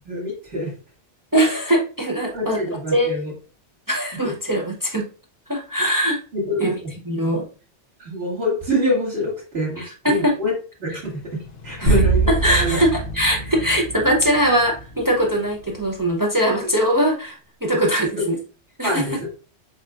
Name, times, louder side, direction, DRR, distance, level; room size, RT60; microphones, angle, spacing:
voice 1, 0.1-0.7 2.3-3.3 4.2-4.3 6.3-6.7 8.0-10.5 10.8-11.2 11.6-12.8 16.6-16.7 18.2-18.3 18.8-19.3, left 1 dB, 55° right, -5 dB, 2.2 m, -25 dB
voice 2, 1.3-2.6 2.9-3.1 3.9-5.0 5.5-6.2 6.6-6.7 7.0-7.5 9.8-10.3 11.8-12.0 12.3-18.4 18.8-19.0, right 1 dB, 25° right, 0 dB, 0.5 m, -21 dB
sound 1, 11.1-16.0, left 6 dB, 60° left, 0.4 m, -39 dB
sound 2, 11.9-14.5, right 4 dB, 75° right, 1.6 m, -23 dB
7.0 x 2.4 x 2.4 m, 0.35 s
omnidirectional pair, 1.2 m